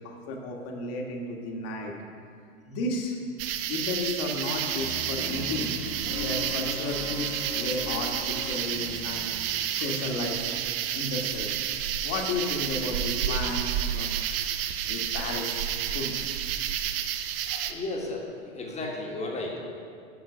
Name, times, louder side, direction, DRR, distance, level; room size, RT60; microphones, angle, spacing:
voice 1, 0.0-1.9 2.7-3.2 3.7-5.8 6.1-10.4 10.9-11.5 12.0-14.6 14.8-16.3, left 2 dB, 35° left, 1 dB, 1.6 m, -33 dB
sound 1, 3.4-17.7, right 10 dB, 45° right, 0.7 m, -30 dB
sound 2, 4.7-10.8, left 3 dB, 80° left, 1.7 m, -39 dB
voice 2, 17.5-19.7, left 2 dB, 15° left, -1 dB, 1.6 m, -34 dB
10.0 x 6.0 x 5.2 m, 2.2 s
hypercardioid pair, 100°, 40 cm